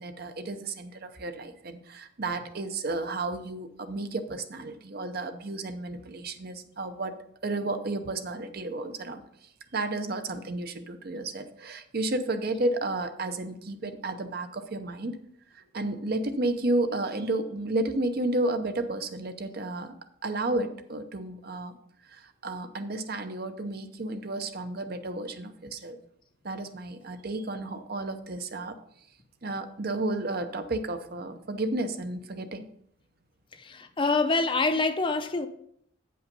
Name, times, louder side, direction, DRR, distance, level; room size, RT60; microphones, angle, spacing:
voice 1, 0.0-7.2 7.4-15.2 15.5-19.9 20.2-21.8 22.0-26.0 26.4-28.8 29.4-32.7, right 2 dB, 50° right, 0.7 m, -32 dB
voice 2, 33.5-35.5, left 3 dB, 25° left, 0.6 m, -26 dB
8.5 x 5.5 x 5.3 m
head